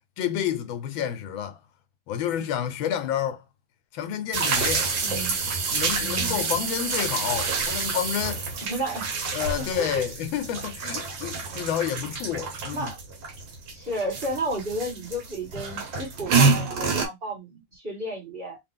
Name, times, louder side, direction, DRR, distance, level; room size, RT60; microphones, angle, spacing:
voice 1, 0.2-1.6 2.1-3.4 3.9-4.9 5.7-8.5 9.3-12.9, left 9 dB, 85° left, 1.5 m, -29 dB
sound 1, 4.3-17.1, right 4 dB, 75° right, 1.7 m, -27 dB
voice 2, 5.0-5.4 6.0-6.4 8.6-9.1 9.6-10.0 11.3-11.4 12.7-13.0 13.7-18.6, right 1 dB, 30° right, 1.9 m, -32 dB
3.5 x 2.4 x 3.6 m
omnidirectional pair, 2.1 m